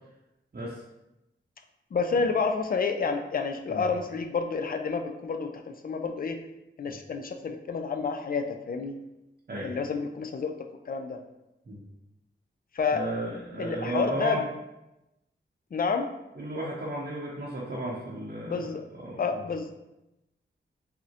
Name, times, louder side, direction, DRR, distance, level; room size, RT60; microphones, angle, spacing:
voice 1, 1.9-6.4 6.8-9.0 9.6-10.5 10.9-11.2 12.7-13.0 13.6-14.4 15.7-16.1 18.4-18.8 19.2-19.7, left 5 dB, 45° left, 5 dB, 0.4 m, -29 dB
voice 2, 12.9-14.4 16.4-19.4, right 1 dB, 50° right, -6 dB, 0.7 m, -34 dB
3.5 x 2.1 x 2.8 m, 0.93 s
cardioid pair, 50°, 20 cm